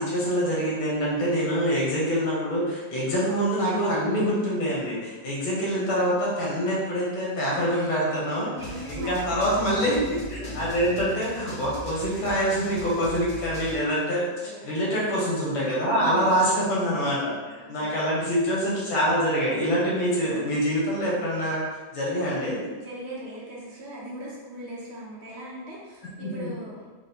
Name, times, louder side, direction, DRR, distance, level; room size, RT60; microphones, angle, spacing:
voice 1, 0.0-8.5 8.9-21.6 21.9-22.6 26.2-26.5, equal, 75° left, -5 dB, 1.9 m, -25 dB
sound 1, 8.6-13.8, left 1 dB, 45° left, 0.7 m, -39 dB
voice 2, 8.6-9.6 14.4-14.7 15.8-16.3 17.6-17.9 22.8-26.8, right 1 dB, 65° right, -6 dB, 1.4 m, -39 dB
4.2 x 2.1 x 4.2 m, 1.3 s
omnidirectional pair, 2.1 m